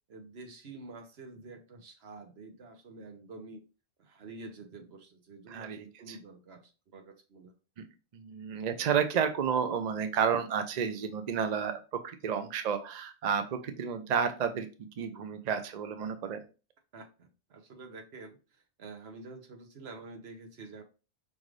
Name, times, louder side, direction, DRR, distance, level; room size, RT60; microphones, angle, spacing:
voice 1, 0.1-3.7 4.0-7.5 16.9-20.8, right 3 dB, 75° right, 5 dB, 1.1 m, -48 dB
voice 2, 5.5-6.2 8.1-14.7 15.0-16.4, right 7 dB, 50° right, 8 dB, 0.6 m, -31 dB
5.4 x 2.5 x 3.1 m, 0.32 s
omnidirectional pair, 1.1 m